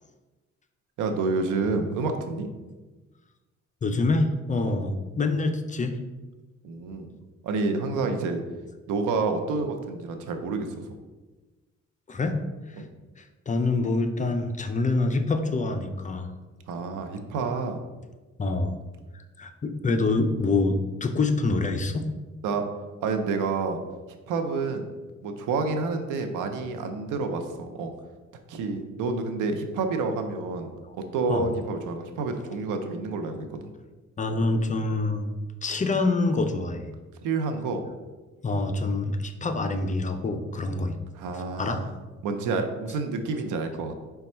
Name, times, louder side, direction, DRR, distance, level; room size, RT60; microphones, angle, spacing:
voice 1, 1.0-2.5 4.6-4.7 6.6-7.1 7.4-8.4 8.9-10.8 12.8-12.9 16.7-17.8 22.4-22.6 23.0-23.8 24.3-24.9 25.2-27.9 28.5-30.7 31.1-33.7 37.2-37.8 41.1-41.9 42.2-43.9, right 4 dB, 90° right, 6 dB, 0.6 m, -28 dB
voice 2, 3.8-6.0 12.1-12.4 12.7-12.8 13.2-16.3 18.4-18.8 19.1-22.1 30.8-30.9 31.3-31.5 34.2-35.3 35.6-36.9 38.4-41.0 41.6-41.8, left 3 dB, 25° left, 6 dB, 0.4 m, -26 dB
5.1 x 2.3 x 4.3 m, 1.2 s
cardioid pair, 90°, 30 cm